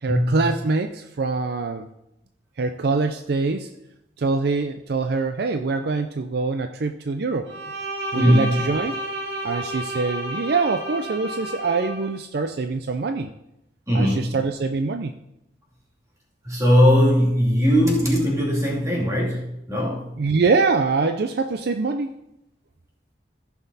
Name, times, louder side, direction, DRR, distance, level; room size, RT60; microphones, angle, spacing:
voice 1, 0.0-1.9 2.6-3.7 4.2-7.5 8.1-9.0 9.4-13.3 13.9-15.1 20.2-22.1, right 4 dB, 60° right, 7 dB, 0.5 m, -24 dB
Bowed string instrument, 7.5-12.1, right 1 dB, 80° right, 1.9 m, -31 dB
voice 2, 8.1-8.6 13.9-14.3 16.4-19.4 19.7-20.0, equal, 20° right, -3 dB, 2.7 m, -19 dB
14.5 x 6.0 x 4.1 m, 0.85 s
head